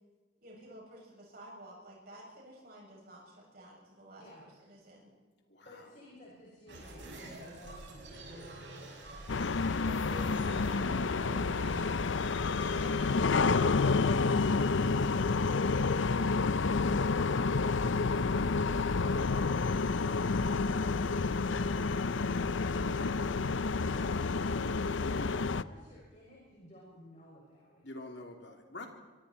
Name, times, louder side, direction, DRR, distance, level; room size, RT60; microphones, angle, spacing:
voice 1, 0.4-4.2 4.6-5.1, right 1 dB, 50° right, -3 dB, 7.2 m, -52 dB
voice 2, 5.6-8.9 25.5-27.9, equal, 40° left, -6 dB, 6.3 m, -55 dB
sound 1, 6.7-14.9, right 1 dB, 70° right, 7.2 m, -47 dB
sound 2, 9.3-25.6, left 4 dB, 80° left, 0.6 m, -29 dB
voice 3, 10.2-10.7 25.0-25.4 27.8-28.9, left 2 dB, 60° left, 3 dB, 3.2 m, -45 dB
24.5 x 24.5 x 4.4 m, 1.4 s
head